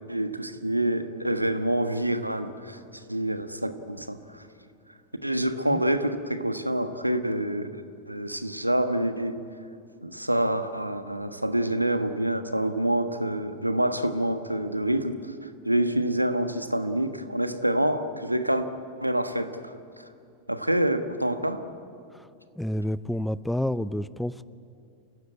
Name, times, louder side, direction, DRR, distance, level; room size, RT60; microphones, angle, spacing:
voice 1, 0.1-2.8 3.1-4.4 5.2-9.4 10.0-15.3 15.6-18.7 19.0-20.0 20.5-21.6, right 1 dB, 90° right, 9 dB, 1.3 m, -27 dB
voice 2, 22.6-24.5, left 1 dB, ahead, 17 dB, 0.5 m, -29 dB
28.5 x 16.0 x 9.9 m, 2.6 s
figure-of-eight pair, 90°, 0 cm